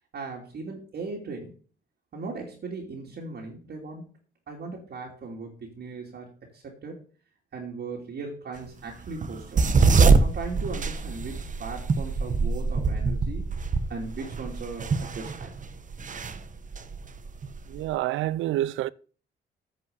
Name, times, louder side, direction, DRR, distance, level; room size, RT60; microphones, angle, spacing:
voice 1, 0.1-1.5 2.1-4.0 4.5-7.0 7.5-9.6 10.2-13.5 13.9-15.5, right 4 dB, 55° right, 2.9 m, -38 dB
sound 1, 9.0-17.9, right 4 dB, 40° right, 1.1 m, -24 dB
voice 2, 17.7-18.9, right 14 dB, 85° right, 0.5 m, -27 dB
9.3 x 5.5 x 7.8 m
cardioid pair, 90°, 20 cm